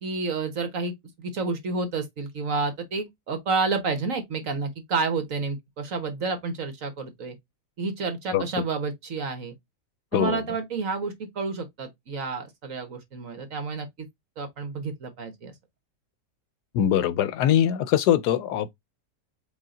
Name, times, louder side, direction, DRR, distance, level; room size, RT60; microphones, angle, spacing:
voice 1, 0.0-7.4 7.8-9.5 10.1-14.1 14.4-15.5, right 4 dB, 50° right, 1.5 m, -30 dB
voice 2, 16.7-18.7, left 10 dB, 75° left, 1.1 m, -22 dB
4.9 x 2.7 x 3.7 m
omnidirectional pair, 1.8 m